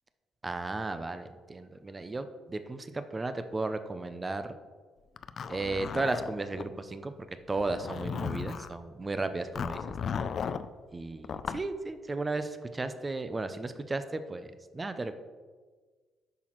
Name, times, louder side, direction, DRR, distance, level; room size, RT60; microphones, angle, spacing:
voice 1, 0.4-4.5 5.5-9.8 10.9-15.1, right 2 dB, 25° right, 10 dB, 0.5 m, -34 dB
Zipper (clothing), 5.2-6.7 7.5-8.7 9.6-10.7 11.2-11.7, left 6 dB, 55° left, 0.3 m, -35 dB
8.3 x 5.9 x 3.0 m, 1.4 s
cardioid pair, 90°, 0 cm